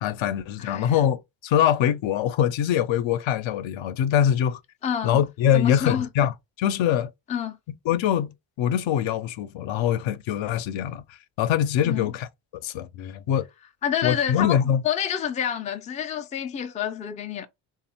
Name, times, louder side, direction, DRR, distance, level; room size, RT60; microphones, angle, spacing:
voice 1, 0.0-4.6 5.0-7.1 7.9-8.3 8.6-12.3 12.6-13.5 14.0-14.8, left 10 dB, 70° left, 0.6 m, -23 dB
voice 2, 0.6-0.9 4.8-5.2 5.5-6.1 7.3-7.6 11.8-12.1 13.8-14.6 14.8-17.5, left 9 dB, 15° left, 0.3 m, -28 dB
3.4 x 2.4 x 4.2 m
cardioid pair, 135°, 47 cm